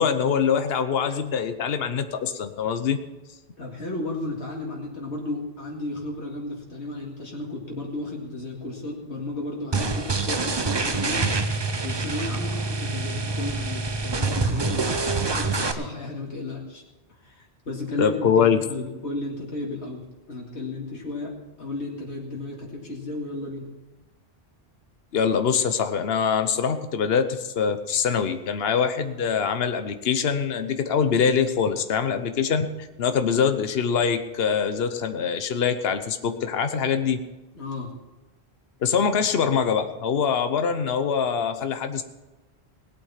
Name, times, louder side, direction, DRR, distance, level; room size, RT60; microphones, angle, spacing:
voice 1, 0.0-3.0 18.0-18.6 25.1-32.7 33.0-37.2 38.8-42.0, left 6 dB, 65° left, 8 dB, 1.1 m, -24 dB
voice 2, 3.6-11.4 11.8-16.8 17.2-21.3 21.6-23.7 37.5-37.9, left 2 dB, 85° left, -2 dB, 2.5 m, -34 dB
sound 1, 9.7-15.7, right 3 dB, 25° right, 0.7 m, -26 dB
18.0 x 8.3 x 5.7 m, 1.1 s
omnidirectional pair, 1.1 m